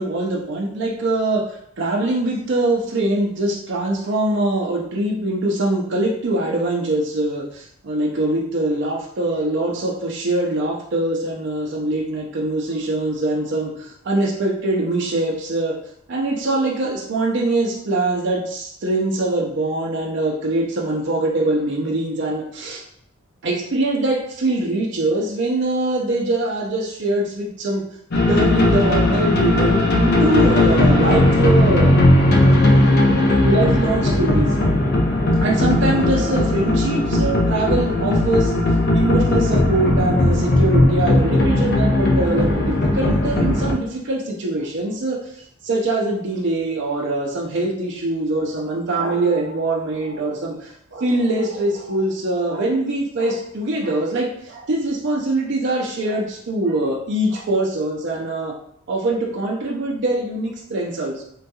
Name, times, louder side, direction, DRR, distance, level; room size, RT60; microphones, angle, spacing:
voice 1, 0.0-15.7 16.1-22.8 23.4-27.8 28.3-31.9 33.1-34.6 35.4-38.5 38.9-45.2 45.6-58.5 58.9-61.2, right 2 dB, 55° right, -1 dB, 0.5 m, -23 dB
sound 1, 28.1-43.7, left 1 dB, 50° left, 0.5 m, -17 dB
3.7 x 2.8 x 2.2 m, 0.71 s
head